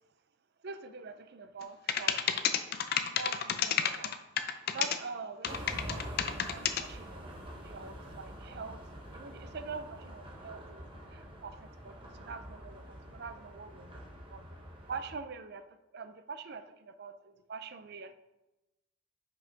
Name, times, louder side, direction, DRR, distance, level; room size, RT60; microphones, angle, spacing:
voice 1, 0.6-2.6 2.9-4.2 4.7-8.8 9.1-10.8 11.1-13.9 14.3-14.4 14.9-15.6 15.9-18.1, right 4 dB, 50° right, 10 dB, 0.5 m, -44 dB
sound 1, 1.6-1.7 1.9-5.0 5.4-6.8, left 9 dB, 50° left, 0.5 m, -30 dB
sound 2, 5.4-15.2, equal, 25° right, 1.1 m, -46 dB
5.4 x 5.3 x 5.1 m, 0.98 s
head